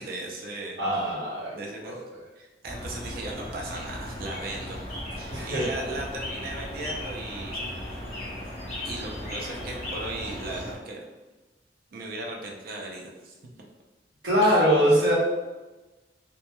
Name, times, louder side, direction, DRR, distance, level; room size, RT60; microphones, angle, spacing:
voice 1, 0.0-0.8 1.5-2.0 2.4-4.8 5.1-7.6 8.8-11.0 11.9-13.4 14.4-14.6, right 2 dB, 55° right, -1 dB, 0.4 m, -37 dB
voice 2, 0.8-2.0 5.3-5.7 14.2-15.1, equal, 75° right, -6 dB, 0.9 m, -23 dB
sound 1, 2.6-10.8, left 1 dB, 35° left, 0.7 m, -36 dB
2.2 x 2.1 x 2.9 m, 1.2 s
head